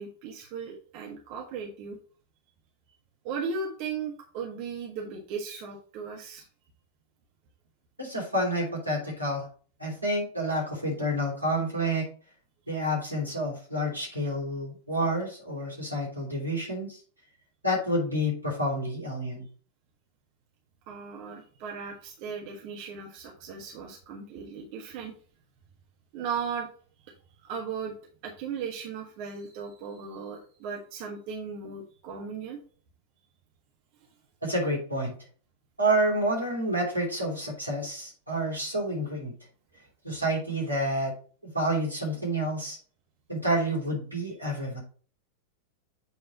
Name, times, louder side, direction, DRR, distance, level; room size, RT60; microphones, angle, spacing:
voice 1, 0.0-2.0 3.2-6.4 20.9-25.1 26.1-26.7 27.4-27.9 28.2-32.6, right 5 dB, 45° right, 0 dB, 1.5 m, -37 dB
voice 2, 8.0-9.5 9.8-12.1 12.7-17.0 17.6-19.5 34.4-35.1 35.8-39.3 40.0-41.1 41.4-42.8 43.3-44.8, right 1 dB, 90° right, -3 dB, 3.5 m, -29 dB
8.4 x 4.1 x 4.3 m, 0.41 s
figure-of-eight pair, 90°, 0 cm